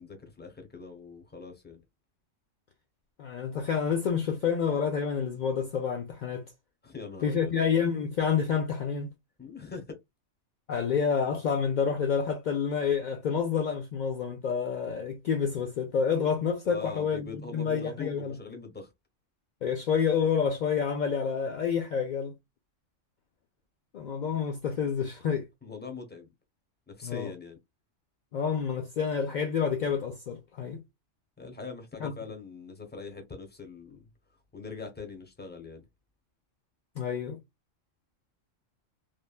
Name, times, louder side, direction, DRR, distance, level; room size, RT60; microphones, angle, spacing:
voice 1, 0.0-1.8 6.8-7.5 9.4-10.0 16.6-18.9 25.6-26.3 26.9-27.6 31.4-34.0 34.5-35.8, left 4 dB, 10° left, 0.6 m, -42 dB
voice 2, 3.2-6.4 7.2-9.1 10.7-18.4 19.6-22.3 23.9-25.5 27.0-27.3 28.3-30.8 32.0-32.1 37.0-37.4, left 6 dB, 70° left, 0.4 m, -28 dB
3.2 x 2.2 x 2.3 m
omnidirectional pair, 1.3 m